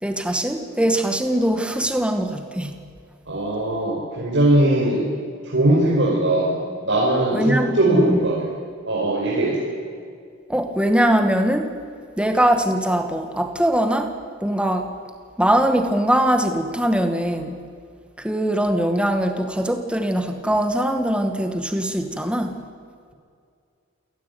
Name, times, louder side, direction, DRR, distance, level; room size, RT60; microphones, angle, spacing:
voice 1, 0.0-2.8 7.3-8.2 10.5-11.7 12.2-14.9 15.4-17.6 18.2-22.6, right 1 dB, 5° right, 6 dB, 2.1 m, -21 dB
voice 2, 3.3-5.1 5.4-8.5 8.8-9.7, right 1 dB, 60° right, -5 dB, 5.2 m, -20 dB
28.0 x 18.5 x 9.5 m, 2.2 s
head